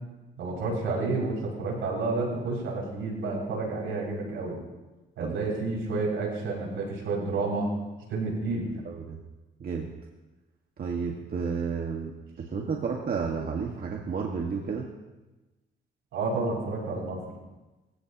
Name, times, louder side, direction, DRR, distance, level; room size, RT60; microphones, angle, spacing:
voice 1, 0.4-4.6 5.2-7.7 8.1-8.8 16.1-17.4, right 3 dB, 80° right, -2 dB, 6.6 m, -30 dB
voice 2, 8.9-9.2 9.6-9.9 10.8-12.1 12.4-14.9, right 5 dB, 50° right, 0 dB, 1.8 m, -31 dB
24.0 x 15.5 x 3.0 m, 1.1 s
cardioid pair, 90°, 20 cm